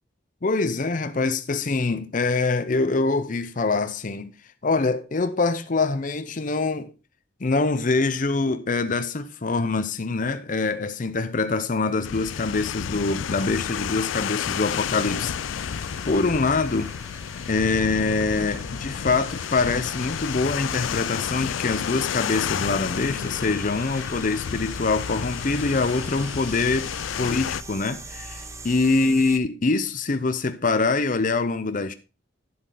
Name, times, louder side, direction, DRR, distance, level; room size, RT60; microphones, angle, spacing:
voice 1, 0.4-4.3 4.6-6.9 7.4-16.9 17.5-26.9 27.2-31.9, left 3 dB, 45° left, 0.7 m, -24 dB
sound 1, 12.0-27.6, left 9 dB, 90° left, 0.4 m, -31 dB
sound 2, 14.1-29.4, right 2 dB, 15° right, 0.8 m, -42 dB
10.5 x 7.6 x 3.8 m
head